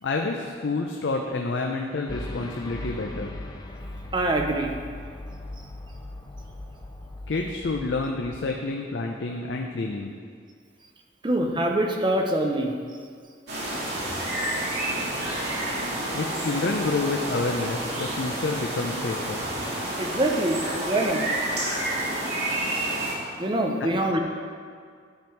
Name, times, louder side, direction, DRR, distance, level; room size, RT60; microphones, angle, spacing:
voice 1, 0.0-3.3 7.3-10.2 16.1-19.4, left 3 dB, 75° left, 2 dB, 0.6 m, -28 dB
sound 1, 2.1-8.4, left 1 dB, 20° left, 0.6 m, -38 dB
voice 2, 4.1-4.7 11.2-12.7 20.0-21.4 23.4-24.2, right 1 dB, 25° right, 2 dB, 0.7 m, -24 dB
sound 2, 13.5-23.1, right 1 dB, 65° right, 2.3 m, -29 dB
10.5 x 5.3 x 4.6 m, 2.1 s
head